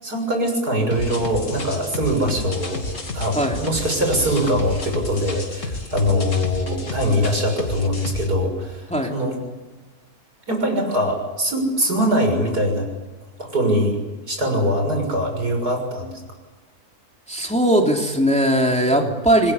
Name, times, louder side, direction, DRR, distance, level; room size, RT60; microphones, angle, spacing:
voice 1, 0.0-2.8 3.1-9.4 10.5-12.8 13.4-14.0 14.3-16.1 18.9-19.1, equal, 80° right, 3 dB, 7.2 m, -22 dB
sound 1, 0.9-8.3, left 2 dB, 55° left, 3.0 m, -31 dB
voice 2, 17.3-19.5, right 1 dB, 5° left, 1 dB, 3.1 m, -19 dB
26.5 x 21.5 x 8.4 m, 1.2 s
omnidirectional pair, 1.6 m